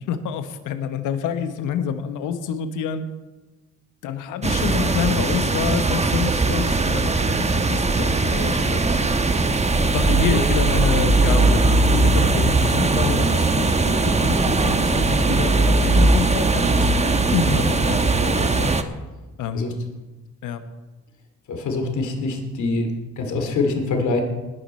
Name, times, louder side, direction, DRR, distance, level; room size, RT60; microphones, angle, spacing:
voice 1, 0.1-3.1 4.0-8.9 9.7-16.9 17.3-18.7 19.4-19.8 20.4-20.6, left 7 dB, 90° left, 9 dB, 1.2 m, -27 dB
sound 1, 4.4-18.8, right 3 dB, 20° right, 1.1 m, -19 dB
voice 2, 21.5-24.2, left 3 dB, 75° left, 3 dB, 2.6 m, -25 dB
20.0 x 9.7 x 4.4 m, 1.2 s
cardioid pair, 90°, 30 cm